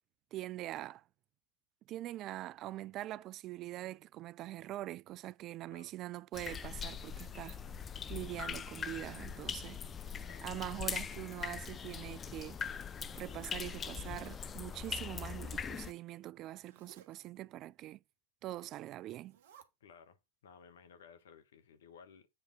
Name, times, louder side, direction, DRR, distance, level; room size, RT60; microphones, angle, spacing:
voice 1, 0.3-1.0 1.9-7.6 8.1-9.8 10.4-12.6 13.1-18.0 18.4-19.4, right 15 dB, 45° right, 0.3 m, -43 dB
sound 1, 6.3-15.9, left 7 dB, 25° left, 0.5 m, -41 dB
Zipper (clothing), 11.8-12.7 13.2-14.3 15.6-16.0 16.6-17.2 18.5-18.8 19.2-19.6, right 9 dB, 70° right, 1.2 m, -62 dB
voice 2, 19.8-22.3, left 6 dB, 75° left, 1.2 m, -58 dB
8.3 x 3.6 x 5.3 m
hypercardioid pair, 90°, 0 cm